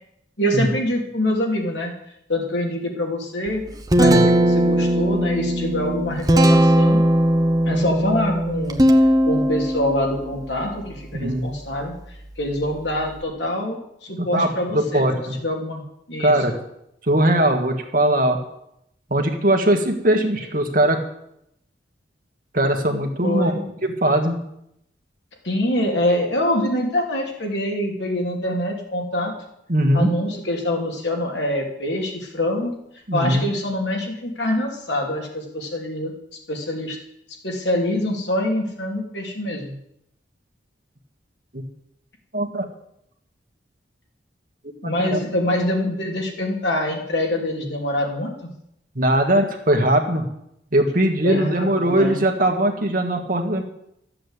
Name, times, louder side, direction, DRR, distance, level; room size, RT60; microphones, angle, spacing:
voice 1, 0.4-1.9 2.3-3.6 4.0-7.0 7.7-8.8 9.3-11.9 12.4-15.8 16.1-16.3 23.2-23.6 25.4-29.3 29.9-32.7 33.1-36.1 36.5-37.0 37.4-39.7 44.8-48.5 51.2-52.2, left 1 dB, 70° left, 0 dB, 3.0 m, -25 dB
Guitar, 3.5-13.2, right 1 dB, 20° right, 0.8 m, -20 dB
voice 2, 11.1-11.5 14.2-15.4 16.2-16.5 17.1-18.4 19.1-21.0 22.5-23.5 23.8-24.4 29.7-30.1 33.1-33.4 41.5-41.6 42.3-42.7 45.0-45.2 49.0-50.2 50.7-53.6, right 1 dB, 45° right, 4 dB, 1.8 m, -20 dB
13.0 x 7.8 x 8.2 m, 0.79 s
head